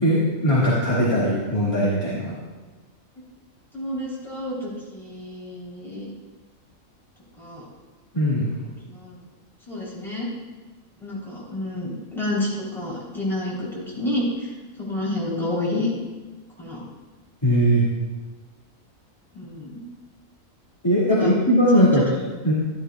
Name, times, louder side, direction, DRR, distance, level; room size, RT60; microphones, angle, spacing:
voice 1, 0.0-2.3 8.1-8.5 17.4-17.9 20.8-22.0 22.4-22.5, equal, 20° left, -9 dB, 2.3 m, -19 dB
voice 2, 3.7-6.1 7.4-7.7 8.9-9.2 9.7-10.3 11.0-14.5 14.8-15.9 16.6-16.8 19.3-19.8 21.1-21.3 21.7-21.9, left 1 dB, ahead, -7 dB, 3.7 m, -29 dB
13.0 x 12.5 x 2.4 m, 1.2 s
omnidirectional pair, 1.4 m